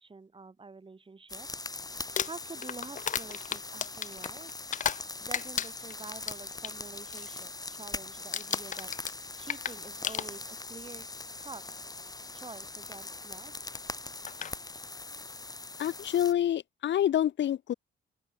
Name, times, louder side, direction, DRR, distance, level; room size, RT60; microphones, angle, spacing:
voice 1, 0.0-1.5 2.2-4.5 5.2-8.9 9.4-11.1 11.4-11.6 12.3-13.5, right 4 dB, 25° right, 4.3 m, -47 dB
sound 1, 1.3-16.3, left 3 dB, 20° left, 2.4 m, -41 dB
Crumpling crinkling, 2.0-5.1 5.3-6.7 7.1-7.4 7.7-8.0 8.3-10.7 11.7-11.8 13.7-13.8 14.3-14.5, left 9 dB, 40° left, 0.5 m, -35 dB
voice 2, 15.8-17.7, left 11 dB, 65° left, 1.7 m, -27 dB
open air
cardioid pair, 90°, 20 cm